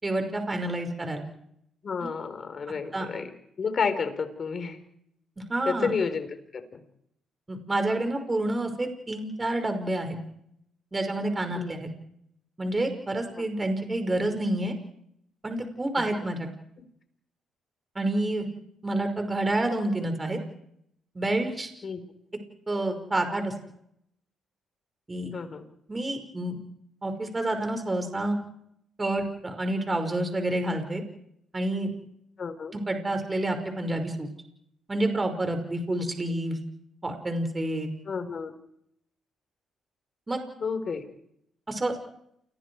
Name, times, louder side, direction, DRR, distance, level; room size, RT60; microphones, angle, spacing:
voice 1, 0.0-1.2 2.0-2.1 2.9-3.1 5.5-5.9 7.5-10.2 10.9-11.9 12.6-14.7 15.4-16.5 18.0-18.5 18.8-20.4 21.2-21.7 22.7-23.5 25.1-25.3 25.9-26.6 27.0-28.4 29.0-31.0 31.5-31.9 32.7-34.3 34.9-36.6 37.0-37.9 40.3-40.4 41.7-42.0, right 1 dB, 20° right, 6 dB, 5.5 m, -28 dB
voice 2, 1.8-3.3 3.6-4.8 5.6-6.3 6.5-6.8 11.5-11.7 13.4-13.5 16.0-16.1 21.8-22.0 25.3-25.6 32.4-32.7 38.1-38.5 40.6-41.0, left 5 dB, 45° left, 9 dB, 4.6 m, -30 dB
29.0 x 22.5 x 4.8 m, 0.73 s
cardioid pair, 90°, 0 cm